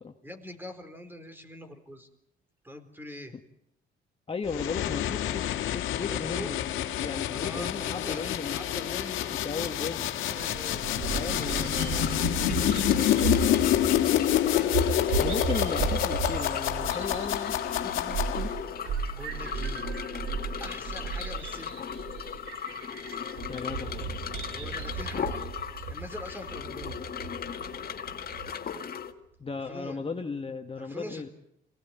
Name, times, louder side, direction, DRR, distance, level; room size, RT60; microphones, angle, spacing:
voice 1, 0.2-2.1 2.6-3.3 6.0-6.5 7.3-9.3 10.2-10.9 14.5-14.9 19.0-19.9 20.6-21.8 24.5-25.4 25.9-26.9 29.7-30.0 30.8-31.3, left 1 dB, 10° right, 7 dB, 4.2 m, -43 dB
voice 2, 4.3-6.6 7.0-8.8 9.3-10.1 11.1-13.8 15.2-18.5 23.5-24.1 29.4-31.3, left 4 dB, 30° left, 4 dB, 1.6 m, -36 dB
sound 1, 4.5-18.8, left 12 dB, 85° left, 1.8 m, -28 dB
Bird vocalization bird call bird song, 10.4-28.5, right 5 dB, 90° right, 3.6 m, -35 dB
sound 2, 10.9-29.1, left 7 dB, 50° left, 1.9 m, -37 dB
25.5 x 18.0 x 9.5 m, 0.81 s
cardioid pair, 90°, 20 cm